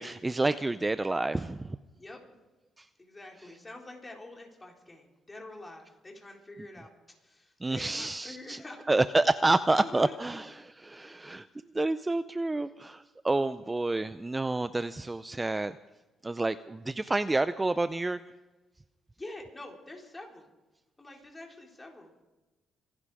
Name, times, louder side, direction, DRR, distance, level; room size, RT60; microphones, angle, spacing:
voice 1, 0.0-1.8 7.6-8.6 8.9-10.5 10.9-11.5 11.7-15.7 16.2-18.2, right 2 dB, 20° right, 13 dB, 0.5 m, -28 dB
voice 2, 1.9-2.4 3.0-8.9 9.7-10.2 11.0-11.4 13.4-13.8 19.2-20.5 21.0-22.2, left 2 dB, 20° left, 1 dB, 4.1 m, -46 dB
25.5 x 11.0 x 5.0 m, 1.1 s
cardioid pair, 90°, 0 cm